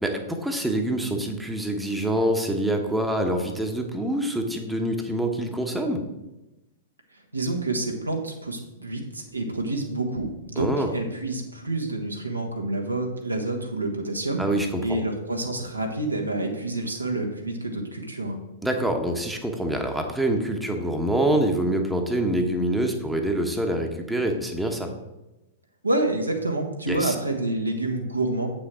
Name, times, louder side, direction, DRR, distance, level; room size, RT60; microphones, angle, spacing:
voice 1, 0.0-6.0 10.6-10.9 14.4-15.0 18.6-24.9 26.9-27.1, right 1 dB, 5° right, 3 dB, 1.1 m, -25 dB
voice 2, 7.3-18.4 25.8-28.5, right 2 dB, 85° right, 2 dB, 1.5 m, -28 dB
8.2 x 6.1 x 5.0 m, 0.99 s
figure-of-eight pair, 100°, 0 cm